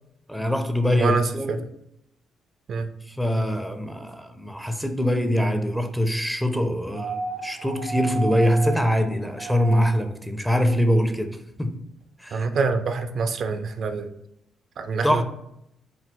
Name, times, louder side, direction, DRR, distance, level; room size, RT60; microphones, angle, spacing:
voice 1, 0.3-1.6 3.2-7.2 7.4-11.7 12.2-12.5 15.0-15.2, equal, 5° left, 0.4 m, -23 dB
voice 2, 1.0-1.6 2.7-2.9 12.3-14.1 14.8-15.2, right 4 dB, 60° right, 0.3 m, -25 dB
sound 1, 6.9-10.1 11.6-11.7, right 4 dB, 90° right, 1.0 m, -33 dB
4.0 x 2.3 x 3.7 m
cardioid pair, 90°, 0 cm